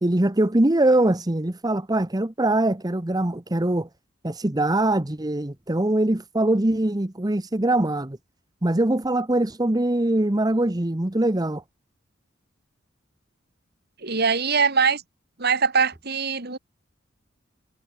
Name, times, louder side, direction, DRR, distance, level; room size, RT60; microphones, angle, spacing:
voice 1, 0.0-3.9 4.2-8.2 8.6-11.6, right 1 dB, 20° right, 1.0 m, -22 dB
voice 2, 14.0-15.0 15.4-16.6, right 5 dB, 55° right, 3.3 m, -22 dB
head